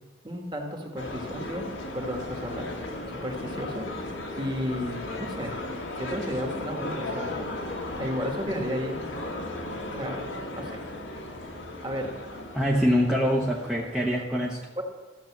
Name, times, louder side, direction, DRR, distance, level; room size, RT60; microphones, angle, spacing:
voice 1, 0.2-1.7 1.9-2.6 3.1-3.9 4.3-5.6 5.9-7.4 8.0-9.0 9.9-10.2 10.5-10.8 11.8-12.1 13.2-13.3 14.8-14.9, equal, 25° right, 2 dB, 1.7 m, -33 dB
sound 1, 1.0-14.2, left 1 dB, 80° left, 1.9 m, -36 dB
voice 2, 12.5-14.6, equal, 5° right, -3 dB, 1.0 m, -24 dB
13.5 x 7.3 x 7.3 m, 1.2 s
head